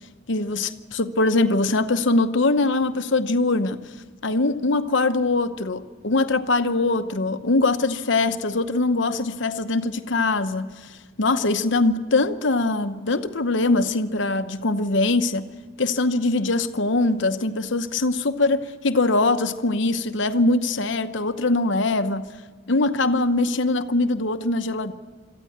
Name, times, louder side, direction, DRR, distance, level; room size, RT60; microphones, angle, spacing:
voice 1, 0.3-3.8 4.2-15.5 15.8-22.3 22.7-24.9, left 2 dB, 65° left, 0.9 m, -22 dB
23.0 x 14.0 x 9.4 m
head